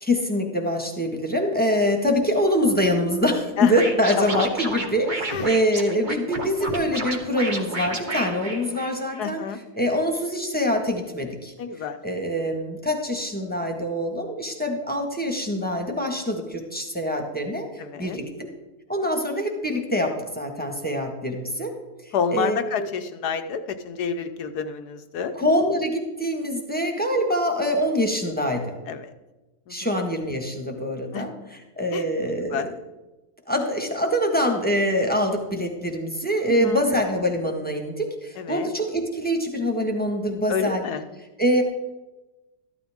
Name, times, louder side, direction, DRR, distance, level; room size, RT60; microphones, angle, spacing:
voice 1, 0.0-9.4 9.8-11.5 12.0-17.7 18.0-18.3 18.9-21.7 22.3-22.9 25.3-28.7 29.7-31.3 31.8-32.7 33.5-40.8 41.4-41.6, equal, 5° left, 2 dB, 1.5 m, -24 dB
Scratching (performance technique), 3.7-9.2, right 2 dB, 35° right, 1.3 m, -31 dB
voice 2, 4.2-4.5 5.3-5.5 9.2-9.6 11.6-12.0 17.8-18.2 22.1-25.3 28.9-29.1 29.7-29.9 31.1-31.3 31.9-32.7 36.6-36.8 38.4-38.7 40.5-41.0, left 6 dB, 80° left, 9 dB, 1.4 m, -29 dB
14.0 x 12.5 x 3.6 m, 1.1 s
omnidirectional pair, 1.7 m